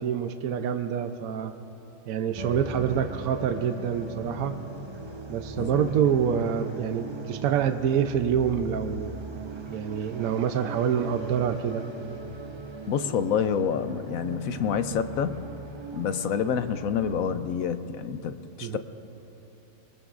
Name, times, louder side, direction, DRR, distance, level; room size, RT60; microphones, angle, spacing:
voice 1, 0.0-1.5 2.1-4.5 5.3-9.2 9.7-11.9 18.6-18.8, right 8 dB, 75° right, 7 dB, 1.1 m, -26 dB
sound 1, 2.3-17.2, right 2 dB, 25° right, 0.7 m, -39 dB
voice 2, 5.6-5.9 12.9-15.5 15.9-18.8, left 7 dB, 70° left, 10 dB, 1.1 m, -28 dB
24.5 x 22.5 x 2.5 m, 3.0 s
omnidirectional pair, 1.6 m